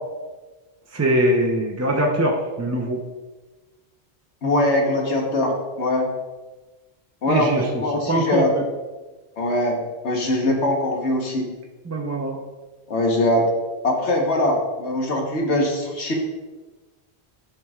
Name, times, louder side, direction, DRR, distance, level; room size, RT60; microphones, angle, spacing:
voice 1, 0.9-3.0 7.3-7.7 8.1-8.6 11.9-12.4, right 1 dB, 20° right, -1 dB, 0.5 m, -22 dB
voice 2, 4.4-6.1 7.2-8.5 9.4-11.5 12.9-13.5 13.8-16.1, left 1 dB, 85° left, 0 dB, 1.5 m, -22 dB
12.0 x 4.6 x 2.4 m, 1.2 s
omnidirectional pair, 1.1 m